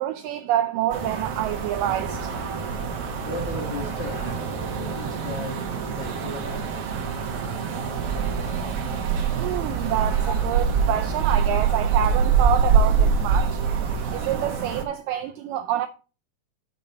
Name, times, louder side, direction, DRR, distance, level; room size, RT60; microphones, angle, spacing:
voice 1, 0.0-2.4 9.3-13.6 14.1-15.9, right 12 dB, 85° right, 1.9 m, -27 dB
sound 1, 0.9-14.8, right 6 dB, 60° right, 1.5 m, -25 dB
voice 2, 2.7-4.4 4.7-5.6 5.9-6.6 8.9-9.1 10.3-10.4, left 3 dB, 55° left, 3.0 m, -36 dB
7.0 x 6.7 x 4.2 m
omnidirectional pair, 4.4 m